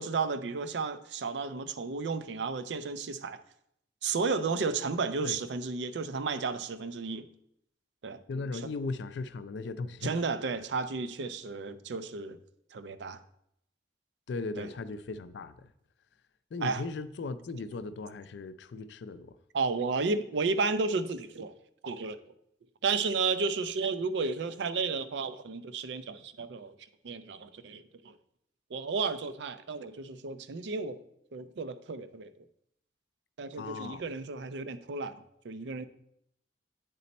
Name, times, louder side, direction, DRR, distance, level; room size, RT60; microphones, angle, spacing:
voice 1, 0.0-3.4 4.0-7.3 8.0-8.2 10.0-12.4 12.7-13.2 14.6-14.7 16.6-16.8 19.5-21.5 21.8-22.2 22.8-26.8 27.0-28.1 28.7-31.0 31.3-32.3 33.4-35.1 35.4-35.8, right 4 dB, 75° right, 13 dB, 0.4 m, -32 dB
voice 2, 8.3-10.1 14.3-15.7 16.5-19.4 33.6-34.0, left 3 dB, 70° left, 13 dB, 0.4 m, -37 dB
8.2 x 4.2 x 4.1 m, 0.75 s
head